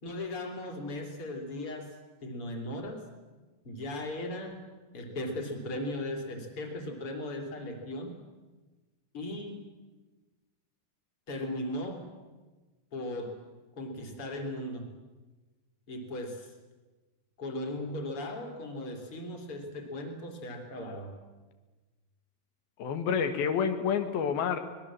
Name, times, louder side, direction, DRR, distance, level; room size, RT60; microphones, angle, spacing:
voice 1, 0.0-3.1 3.6-8.2 9.1-9.7 11.3-12.1 12.9-13.4 13.8-14.9 15.9-16.5 17.4-21.2, left 1 dB, 40° left, 4 dB, 3.7 m, -37 dB
voice 2, 22.8-24.6, left 7 dB, 90° left, 7 dB, 3.4 m, -28 dB
25.0 x 19.5 x 7.5 m, 1.2 s
omnidirectional pair, 4.2 m